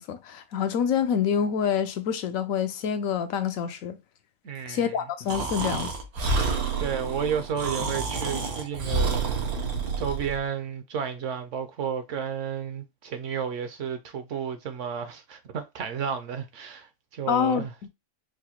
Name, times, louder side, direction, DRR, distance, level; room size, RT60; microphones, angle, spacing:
voice 1, 0.0-4.0 4.7-5.9 17.3-17.9, left 8 dB, 75° left, 1.0 m, -27 dB
voice 2, 4.4-4.9 6.8-9.3 9.6-9.7 10.0-17.7, right 7 dB, 65° right, 0.9 m, -32 dB
Breathing, 5.3-10.4, right 4 dB, 85° right, 1.3 m, -28 dB
4.8 x 2.1 x 2.9 m
omnidirectional pair, 1.5 m